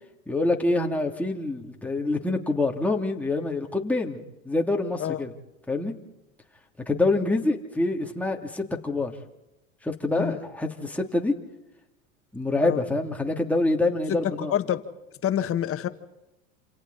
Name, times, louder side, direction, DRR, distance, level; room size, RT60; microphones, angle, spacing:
voice 1, 0.3-4.2 4.4-5.3 5.7-5.9 6.9-9.1 9.8-11.3 12.3-14.6, left 2 dB, 5° left, 1 dB, 3.0 m, -26 dB
voice 2, 14.1-14.8 15.2-15.9, left 10 dB, 30° left, 9 dB, 1.8 m, -27 dB
28.5 x 28.0 x 4.3 m, 0.93 s
hypercardioid pair, 95°, 41 cm